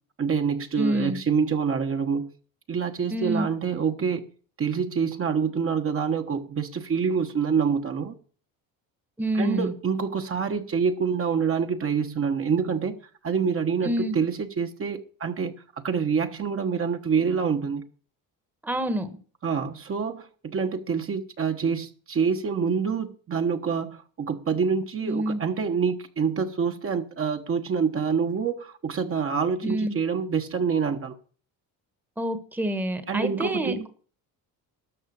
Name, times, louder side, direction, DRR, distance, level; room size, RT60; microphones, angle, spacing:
voice 1, 0.2-2.3 2.7-4.2 4.6-8.1 9.3-13.0 13.2-15.5 15.8-17.8 19.4-31.2 33.1-33.9, right 6 dB, 35° right, 1.3 m, -26 dB
voice 2, 0.8-1.2 3.1-3.5 9.2-9.7 13.8-14.1 18.6-19.1 25.1-25.4 29.6-29.9 32.2-33.9, right 1 dB, 5° right, 1.2 m, -27 dB
13.0 x 5.6 x 8.6 m
cardioid pair, 115°, 37 cm